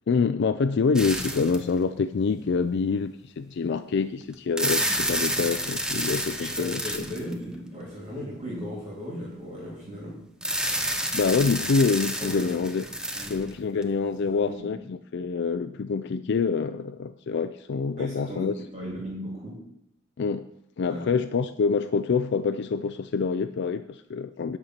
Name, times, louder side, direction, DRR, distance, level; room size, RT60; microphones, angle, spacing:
voice 1, 0.1-7.0 10.7-12.8 13.3-18.5 20.2-20.5 20.8-24.6, left 5 dB, 60° left, 11 dB, 0.4 m, -26 dB
sound 1, 1.0-1.8 2.5-2.6 4.3-7.6 10.4-13.8, right 1 dB, 5° right, 0.8 m, -29 dB
voice 2, 6.4-10.2 12.2-12.6 13.1-13.3 13.7-13.9 14.3-14.6 18.0-18.5 18.7-19.5 20.9-21.0, equal, 30° right, -4 dB, 3.4 m, -36 dB
11.0 x 4.3 x 7.9 m, 0.77 s
head